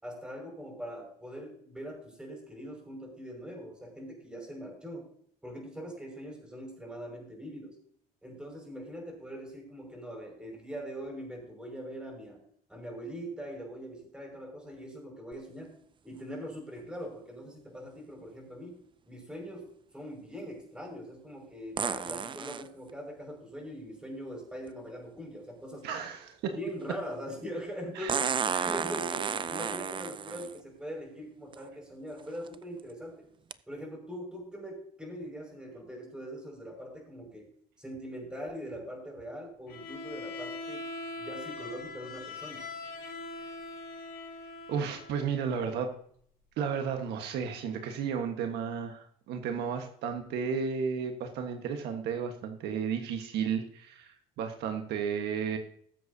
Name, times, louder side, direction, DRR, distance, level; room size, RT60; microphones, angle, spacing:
voice 1, 0.0-5.1 5.4-7.8 8.2-12.4 12.7-15.7 16.0-18.8 19.1-25.9 26.5-33.2 33.7-37.5 37.8-40.8 41.2-42.7, equal, 5° right, 1 dB, 5.6 m, -42 dB
sound 1, 15.3-15.4 21.8-22.7 24.7-24.8 28.1-30.6 31.5-31.6 32.3-32.5 33.5-33.6, right 7 dB, 30° right, 0.5 m, -32 dB
voice 2, 25.8-26.5 28.0-28.1 28.5-28.7 44.7-45.9 46.6-55.6, right 6 dB, 80° right, 5 dB, 1.4 m, -33 dB
Bowed string instrument, 39.7-45.3, left 3 dB, 65° left, 4.8 m, -42 dB
20.5 x 7.8 x 2.8 m, 0.62 s
cardioid pair, 110°, 17 cm